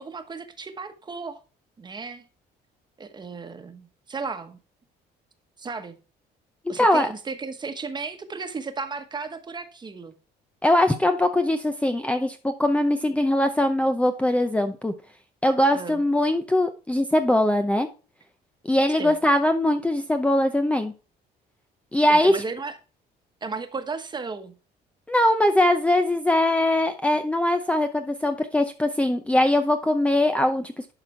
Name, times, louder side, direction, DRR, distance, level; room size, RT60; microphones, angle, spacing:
voice 1, 0.0-1.4 1.8-2.3 3.0-4.6 5.6-6.0 6.7-10.1 15.7-16.0 19.0-19.2 22.1-22.7 23.4-24.5, right 4 dB, 25° right, 1.3 m, -34 dB
voice 2, 6.8-7.1 10.6-14.9 15.4-17.9 18.7-20.9 21.9-22.3 25.1-30.7, left 1 dB, 5° left, 0.6 m, -21 dB
11.5 x 4.4 x 4.5 m
cardioid pair, 110°, 17 cm